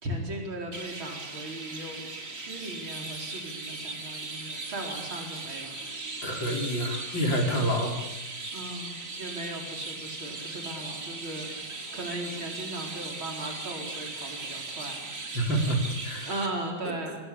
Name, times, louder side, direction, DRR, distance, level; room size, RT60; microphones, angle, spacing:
voice 1, 0.0-5.7 6.3-6.5 7.5-7.8 8.5-15.1 16.2-17.2, right 1 dB, 90° right, 1 dB, 5.3 m, -38 dB
Chirp tweet, 0.7-16.5, right 3 dB, 40° right, 3.1 m, -38 dB
voice 2, 6.2-8.0 15.3-16.3 16.8-17.2, right 1 dB, 70° left, 2 dB, 5.4 m, -28 dB
27.0 x 25.5 x 8.7 m, 0.96 s
omnidirectional pair, 2.2 m